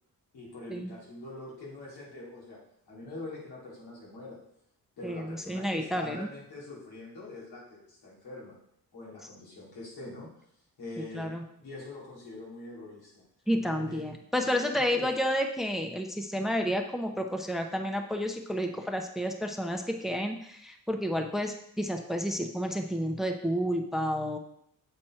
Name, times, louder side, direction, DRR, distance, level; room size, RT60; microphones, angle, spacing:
voice 1, 0.3-4.4 5.0-8.6 8.9-10.3 10.8-13.3 13.7-14.0 14.4-15.1, left 2 dB, 85° left, -5 dB, 2.9 m, -44 dB
voice 2, 5.0-6.3 11.1-11.4 13.5-24.4, equal, ahead, 4 dB, 0.8 m, -30 dB
7.8 x 4.2 x 4.4 m, 0.73 s
cardioid pair, 65°, 37 cm